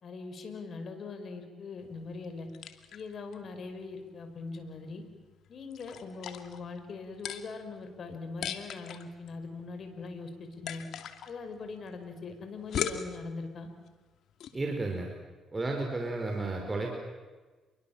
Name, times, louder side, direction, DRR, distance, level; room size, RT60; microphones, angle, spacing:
voice 1, 0.0-2.5 2.9-5.0 5.5-10.8 11.3-13.7, left 4 dB, 55° left, 6 dB, 5.6 m, -41 dB
sound 1, 1.8-14.7, left 8 dB, 75° left, 2.4 m, -42 dB
voice 2, 14.5-15.1 15.5-16.9, right 2 dB, 25° right, 1 dB, 5.1 m, -32 dB
30.0 x 23.0 x 7.4 m, 1.3 s
cardioid pair, 90°, 0 cm